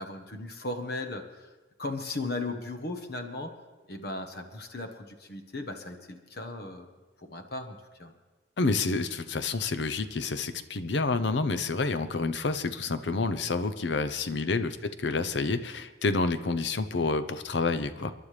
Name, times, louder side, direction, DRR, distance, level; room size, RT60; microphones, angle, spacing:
voice 1, 0.0-1.5 1.8-3.5 3.9-6.9 7.2-8.1, left 2 dB, 60° left, 6 dB, 1.2 m, -37 dB
voice 2, 8.6-18.1, left 3 dB, 80° left, 11 dB, 0.7 m, -29 dB
28.5 x 11.5 x 3.4 m, 1.2 s
head